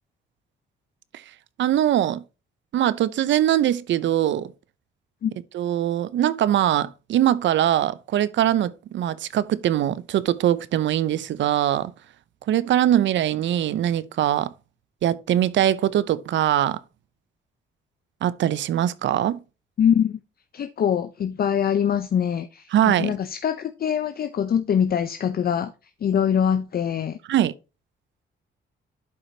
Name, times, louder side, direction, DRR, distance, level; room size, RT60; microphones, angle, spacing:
voice 1, 1.6-2.2 2.7-4.5 5.5-11.9 12.5-14.5 15.0-16.8 18.2-19.4 22.7-23.2 27.3-27.5, right 11 dB, 70° right, 0.7 m, -22 dB
voice 2, 19.8-20.2 20.5-25.7 26.0-27.2, left 8 dB, 50° left, 0.7 m, -23 dB
11.5 x 5.0 x 2.8 m
cardioid pair, 90°, 20 cm